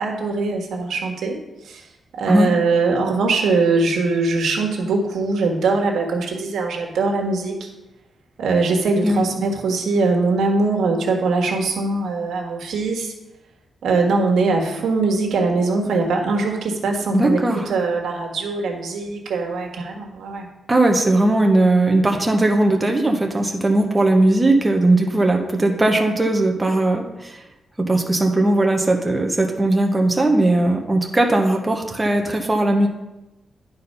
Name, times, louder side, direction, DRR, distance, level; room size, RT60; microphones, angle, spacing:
voice 1, 0.0-1.4 1.6-1.8 2.1-7.7 8.4-13.1 13.8-20.5, right 3 dB, 90° right, 2 dB, 1.5 m, -21 dB
voice 2, 17.1-17.7 20.7-27.4 27.8-32.9, right 2 dB, 15° right, 2 dB, 0.8 m, -18 dB
10.5 x 4.2 x 5.4 m, 0.99 s
wide cardioid pair, 150°, 0 cm